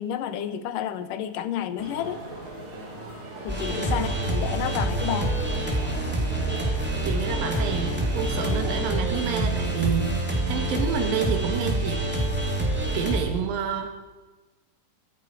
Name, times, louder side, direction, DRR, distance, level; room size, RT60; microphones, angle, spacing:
voice 1, 0.0-2.2 3.4-5.3, left 10 dB, 75° left, 11 dB, 2.4 m, -30 dB
sound 1, 1.8-8.7, right 2 dB, 60° right, 5.2 m, -38 dB
sound 2, 3.5-13.2, right 1 dB, 5° right, 2.3 m, -26 dB
voice 2, 7.0-12.0 12.9-13.9, right 7 dB, 85° right, 5 dB, 3.0 m, -29 dB
24.0 x 10.5 x 4.7 m, 1.2 s
omnidirectional pair, 3.9 m